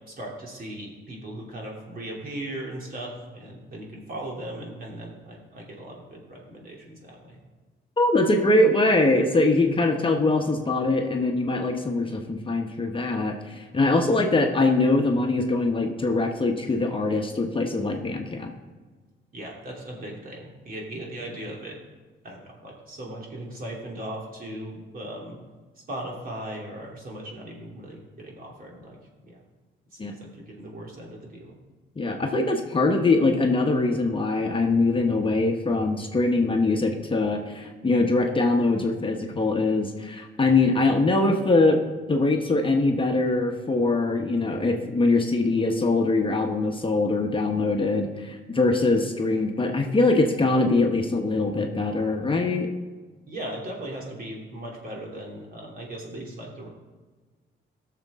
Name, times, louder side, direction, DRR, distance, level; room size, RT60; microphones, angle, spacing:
voice 1, 0.1-7.4 19.3-21.8 22.2-25.4 25.9-29.4 29.9-31.6 53.3-56.7, right 1 dB, 45° right, -2 dB, 3.0 m, -38 dB
voice 2, 8.0-18.5 30.0-30.1 32.0-41.8 42.1-52.7, left 2 dB, 25° left, 2 dB, 1.1 m, -23 dB
15.0 x 6.8 x 3.7 m, 1.4 s
cardioid pair, 90°, 20 cm